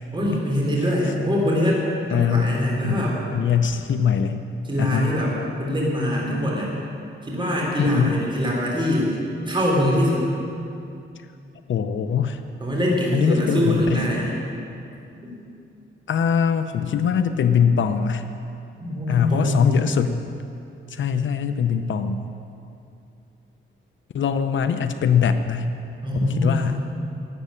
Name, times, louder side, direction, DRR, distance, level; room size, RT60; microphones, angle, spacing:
voice 1, 0.1-1.8 2.1-3.2 4.6-6.7 7.2-9.1 9.5-10.2 12.6-14.4 15.2-15.4 18.8-19.8 26.0-26.8, equal, 25° right, -3 dB, 3.5 m, -23 dB
voice 2, 2.1-2.6 2.8-4.4 4.8-5.2 7.8-8.1 11.7-12.4 13.1-14.0 16.1-18.3 19.1-20.2 20.9-22.3 24.1-25.7 26.2-26.8, left 7 dB, 65° left, 9 dB, 0.7 m, -22 dB
12.5 x 8.5 x 9.8 m, 2.6 s
cardioid pair, 105°, 21 cm